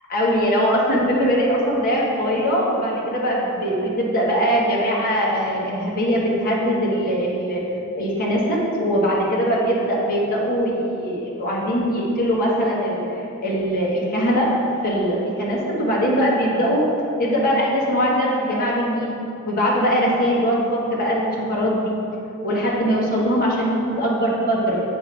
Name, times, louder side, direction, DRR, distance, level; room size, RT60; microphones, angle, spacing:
voice 1, 0.1-14.5 14.8-16.9 17.2-19.2 19.4-22.0 22.4-24.7, equal, 40° left, -5 dB, 1.4 m, -21 dB
8.4 x 5.1 x 3.4 m, 2.9 s
head